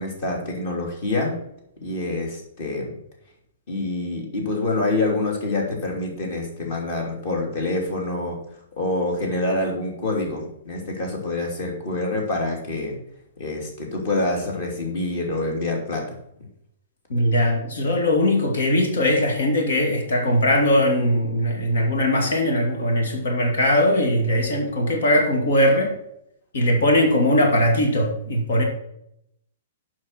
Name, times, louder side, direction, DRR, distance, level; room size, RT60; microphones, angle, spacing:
voice 1, 0.0-1.3 1.8-3.0 3.7-8.4 8.8-13.0 13.4-16.2, left 2 dB, 40° left, 1 dB, 2.9 m, -26 dB
voice 2, 17.1-25.9 26.5-28.6, left 1 dB, 75° left, 1 dB, 2.4 m, -20 dB
7.6 x 5.8 x 5.9 m, 0.75 s
hypercardioid pair, 170°, 0 cm